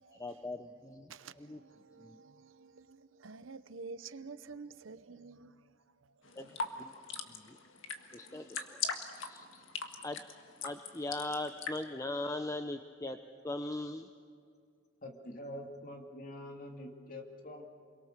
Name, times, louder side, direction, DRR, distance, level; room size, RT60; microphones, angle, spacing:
voice 1, 0.1-1.1 1.4-1.6 2.0-2.2 6.4-6.5 6.8-6.9 7.3-7.6 8.1-8.8 9.2-9.6 10.0-10.2 10.6-13.2 13.4-14.1, left 2 dB, 15° left, 0.7 m, -40 dB
voice 2, 1.1-5.5, right 4 dB, 85° right, 0.8 m, -49 dB
sound 1, 6.2-11.8, left 5 dB, 80° left, 1.7 m, -41 dB
voice 3, 15.0-17.6, left 1 dB, 45° left, 2.5 m, -45 dB
29.0 x 22.5 x 6.7 m
head